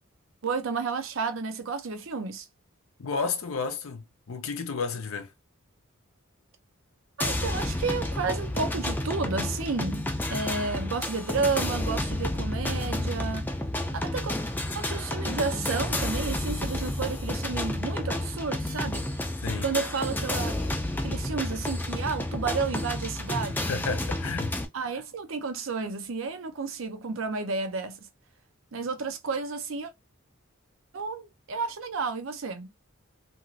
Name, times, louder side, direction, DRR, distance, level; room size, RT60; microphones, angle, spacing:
voice 1, 0.4-2.5 7.2-13.5 13.9-14.3 14.7-19.0 19.6-20.8 21.0-23.7 24.7-28.1 28.7-29.9 30.9-32.7, right 4 dB, 70° right, 0.6 m, -31 dB
voice 2, 3.0-5.3 19.4-19.7 23.7-24.6, left 5 dB, 85° left, 0.6 m, -32 dB
sound 1, 7.2-24.6, left 1 dB, 10° left, 0.4 m, -30 dB
3.0 x 2.7 x 2.6 m
head